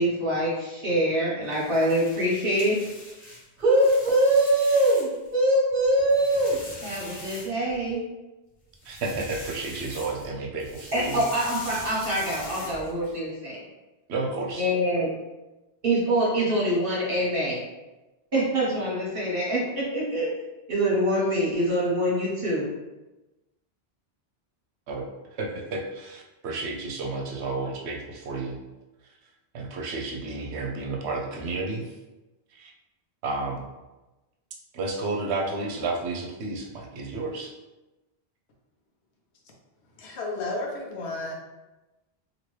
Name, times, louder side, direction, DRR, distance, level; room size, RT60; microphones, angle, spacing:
voice 1, 0.0-2.8 3.6-8.0 10.9-13.6 14.6-15.1 15.8-17.6 18.3-20.3 20.7-22.7, right 1 dB, 60° right, -5 dB, 1.2 m, -24 dB
sound 1, 1.4-5.3 5.7-7.9 8.7-10.3 10.6-13.1, left 1 dB, 65° left, 1.4 m, -42 dB
voice 2, 8.8-11.2 14.1-14.7 24.9-28.6 29.5-31.9 32.6-32.7 33.2-33.6 34.7-37.5, right 3 dB, 80° right, 1 dB, 0.9 m, -31 dB
voice 3, 40.0-41.3, left 2 dB, 85° left, -1 dB, 1.0 m, -32 dB
2.9 x 2.8 x 3.1 m, 1.1 s
omnidirectional pair, 1.1 m